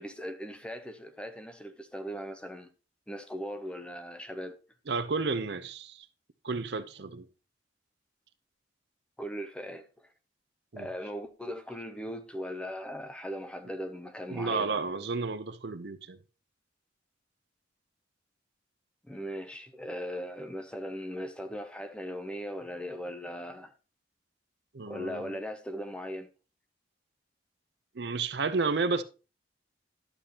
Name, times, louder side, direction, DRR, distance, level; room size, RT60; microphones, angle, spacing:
voice 1, 0.0-2.7 3.1-4.6 9.2-10.1 10.8-14.7 19.0-23.7 24.9-26.3, equal, 5° left, 0.6 m, -39 dB
voice 2, 4.9-6.1 6.4-7.3 10.7-10.9 14.3-16.2 24.7-25.3 27.9-29.0, right 4 dB, 60° right, 0.6 m, -31 dB
11.5 x 6.7 x 2.9 m
head